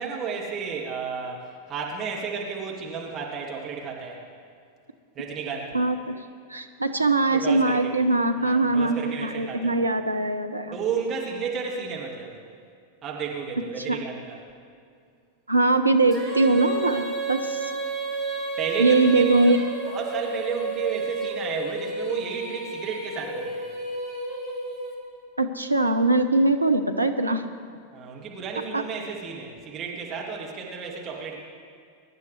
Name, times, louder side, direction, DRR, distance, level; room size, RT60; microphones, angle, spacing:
voice 1, 0.0-4.2 5.2-5.8 7.3-7.9 8.4-9.8 10.7-12.4 13.0-14.4 18.6-19.5 19.9-23.7 27.9-31.4, right 6 dB, 30° right, -2 dB, 2.1 m, -32 dB
voice 2, 5.7-6.2 6.5-10.8 13.8-14.0 15.5-17.8 18.8-19.6 19.9-20.0 25.4-27.4 28.7-28.8, right 2 dB, 85° right, 6 dB, 0.8 m, -22 dB
Female singing, 16.1-25.3, right 3 dB, 10° left, 2.7 m, -32 dB
23.0 x 11.5 x 3.3 m, 2.3 s
figure-of-eight pair, 90°, 0 cm